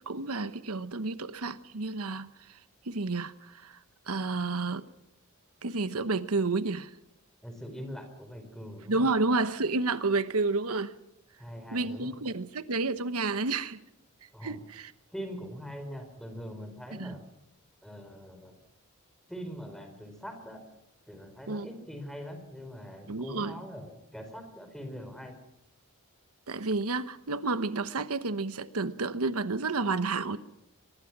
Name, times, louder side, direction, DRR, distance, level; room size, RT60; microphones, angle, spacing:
voice 1, 0.1-2.6 2.8-3.8 4.1-4.8 5.6-6.9 8.9-10.9 11.7-13.8 14.4-14.9 17.0-17.1 21.5-21.7 23.1-23.6 26.5-30.4, right 3 dB, 85° right, 12 dB, 1.1 m, -30 dB
voice 2, 7.4-9.1 11.4-12.2 14.3-14.6 15.1-17.2 17.8-18.6 19.3-20.6 21.1-25.4, equal, ahead, 6 dB, 4.6 m, -42 dB
25.0 x 20.5 x 6.1 m, 0.88 s
head